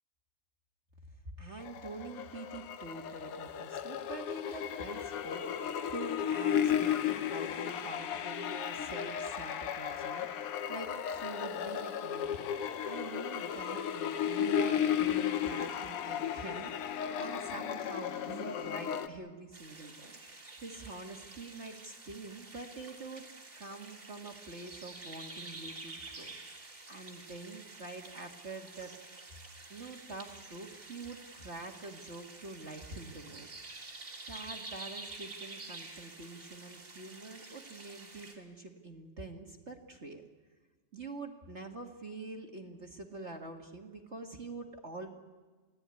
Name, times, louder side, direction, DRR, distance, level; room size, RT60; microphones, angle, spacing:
voice 1, 1.4-12.3 12.8-23.2 23.5-26.4 26.9-28.9 29.7-33.5 34.3-40.2 40.9-45.1, right 3 dB, 45° right, 2 dB, 0.9 m, -46 dB
sound 1, 1.6-19.1, left 9 dB, 70° left, 1.4 m, -34 dB
sound 2, 19.5-38.3, right 3 dB, 20° right, 3.0 m, -49 dB
28.5 x 17.5 x 9.7 m, 1.4 s
omnidirectional pair, 3.9 m